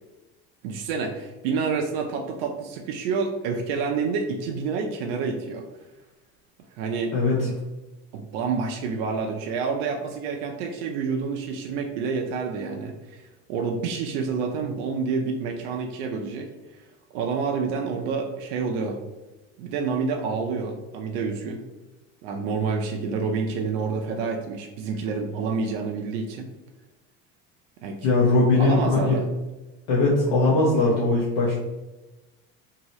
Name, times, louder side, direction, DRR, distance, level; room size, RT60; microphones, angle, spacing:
voice 1, 0.6-5.6 6.8-7.1 7.4-7.5 8.1-16.8 17.1-19.0 19.6-21.6 22.2-26.5 27.8-28.0 28.6-29.2, right 5 dB, 80° right, 2 dB, 0.5 m, -28 dB
voice 2, 7.1-7.5 28.0-29.2 29.9-31.5, left 2 dB, 70° left, -6 dB, 0.8 m, -20 dB
2.8 x 2.7 x 3.0 m, 1.1 s
cardioid pair, 160°, 29 cm